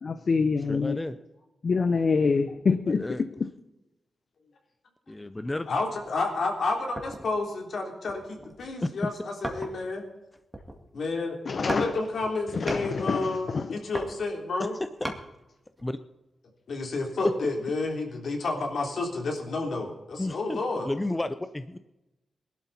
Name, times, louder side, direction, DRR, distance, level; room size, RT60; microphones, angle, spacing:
voice 1, 0.0-1.0 1.6-3.0 11.5-12.0 12.5-13.8, left 4 dB, 50° left, 0.7 m, -26 dB
voice 2, 0.7-1.2 2.9-3.2 5.1-5.7 9.0-9.1 14.6-15.1 15.8-16.0 17.2-17.3 20.2-21.8, left 2 dB, 15° left, 0.5 m, -31 dB
voice 3, 5.7-10.0 10.9-11.3 11.6-14.7 16.7-20.9, left 3 dB, 65° left, 3.4 m, -30 dB
sound 1, 7.0-7.4 8.0-8.7 9.4-10.0 10.4-11.1 11.7-11.9 12.2-12.9 13.7-15.2 15.8-15.9, right 1 dB, 10° right, 2.1 m, -37 dB
21.0 x 12.0 x 4.2 m
wide cardioid pair, 125°, 0 cm